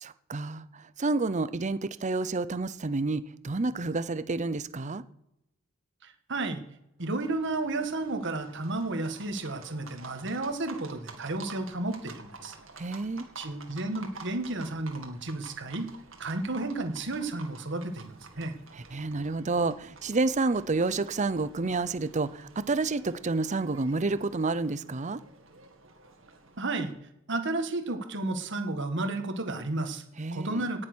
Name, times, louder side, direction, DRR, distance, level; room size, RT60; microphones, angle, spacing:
voice 1, 0.0-5.0 12.8-13.3 18.7-25.2 30.2-30.7, right 3 dB, 35° right, 0.6 m, -29 dB
voice 2, 6.0-6.6 7.0-12.5 13.4-15.9 16.2-18.5 26.6-26.9 27.3-30.0 30.3-30.9, right 2 dB, 60° right, 1.8 m, -32 dB
Livestock farm animals working animals, 7.0-26.9, right 3 dB, 75° right, 2.2 m, -50 dB
18.0 x 7.5 x 6.3 m
head